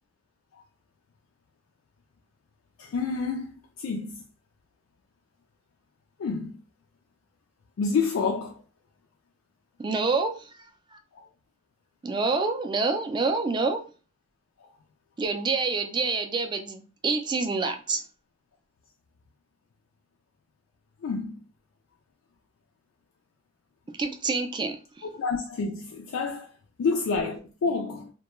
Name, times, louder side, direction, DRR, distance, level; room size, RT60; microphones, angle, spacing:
voice 1, 2.8-4.2 6.2-6.6 7.8-8.6 11.2-11.3 21.0-21.4 25.0-26.5 26.8-28.1, left 4 dB, 80° left, 0.3 m, -29 dB
voice 2, 9.8-10.5 10.9-11.0 12.0-13.8 15.2-18.0 24.0-25.1, right 4 dB, 25° right, 0.3 m, -27 dB
2.2 x 2.2 x 2.9 m
head